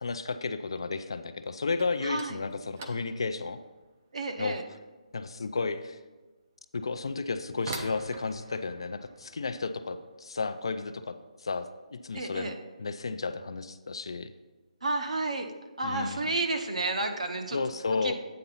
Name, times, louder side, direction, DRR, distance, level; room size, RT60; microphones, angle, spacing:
voice 1, 0.0-3.6 4.4-4.6 5.1-6.0 6.7-11.2 11.4-12.5 12.8-14.3 15.8-16.3 17.5-18.1, left 4 dB, 40° left, 10 dB, 0.4 m, -33 dB
sound 1, 1.8-12.4 12.7-13.3 13.6-13.9 14.2-14.3 15.0-15.1 16.0-16.2 16.6-17.0, right 3 dB, 20° right, 0.4 m, -47 dB
voice 2, 2.0-2.4 4.1-4.6 12.1-12.6 14.8-15.5 15.8-17.6 18.0-18.1, right 2 dB, 60° right, 5 dB, 0.9 m, -31 dB
8.6 x 3.9 x 5.6 m, 1.2 s
hypercardioid pair, 180°, 4 cm